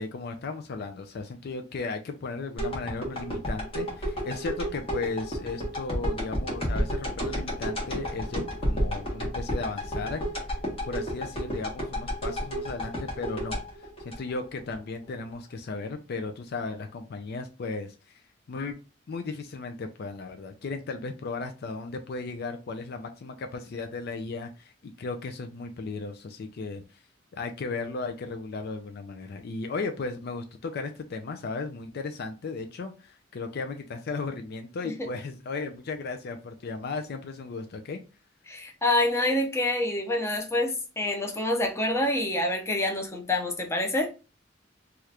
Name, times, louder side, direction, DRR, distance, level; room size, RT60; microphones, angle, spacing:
voice 1, 0.0-10.2 10.9-18.2 18.5-18.8 19.1-27.0 27.3-38.0, left 3 dB, 55° left, 0.4 m, -35 dB
sound 1, 2.6-14.8 15.2-15.3, equal, 30° left, 1.1 m, -31 dB
voice 2, 38.5-44.1, left 1 dB, 15° left, 0.6 m, -27 dB
2.9 x 2.4 x 3.2 m
head